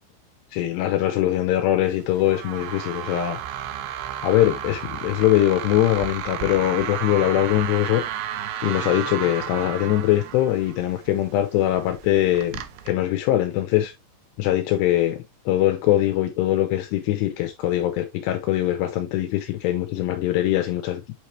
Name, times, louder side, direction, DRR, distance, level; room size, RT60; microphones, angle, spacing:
voice 1, 0.5-3.4 4.2-8.0 8.6-13.9 14.4-21.0, left 13 dB, 80° left, 2.5 m, -22 dB
sound 1, 1.9-12.9, right 10 dB, 80° right, 2.5 m, -33 dB
8.5 x 4.3 x 3.1 m
omnidirectional pair, 5.5 m